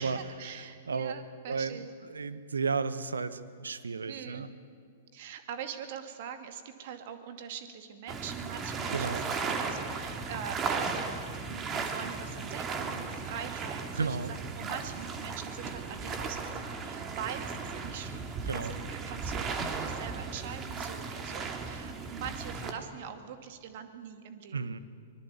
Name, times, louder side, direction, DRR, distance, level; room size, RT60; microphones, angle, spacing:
voice 1, 0.0-1.9 4.0-4.4 5.1-11.2 11.5-18.5 18.9-24.6, right 8 dB, 50° right, 7 dB, 2.3 m, -43 dB
voice 2, 1.5-1.8 2.1-4.5 8.9-9.2 13.9-14.3 18.5-18.8 24.5-24.8, right 4 dB, 75° right, 13 dB, 1.3 m, -33 dB
sound 1, 8.1-22.7, right 4 dB, 25° right, 2.6 m, -36 dB
24.5 x 21.0 x 8.5 m, 2.2 s
figure-of-eight pair, 110°, 0 cm